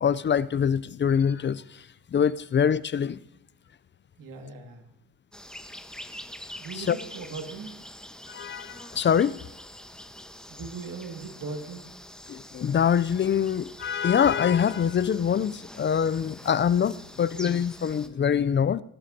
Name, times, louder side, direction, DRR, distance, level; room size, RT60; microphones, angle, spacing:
voice 1, 0.0-1.6 2.1-3.2 6.8-7.0 8.3-9.4 12.3-18.8, left 8 dB, 30° left, 0.4 m, -24 dB
voice 2, 4.2-4.8 6.6-7.8 10.5-11.8, right 4 dB, 65° right, 2.1 m, -39 dB
sound 1, 5.3-18.1, equal, ahead, 1.1 m, -45 dB
21.0 x 12.0 x 2.8 m
supercardioid pair, 75°, 36 cm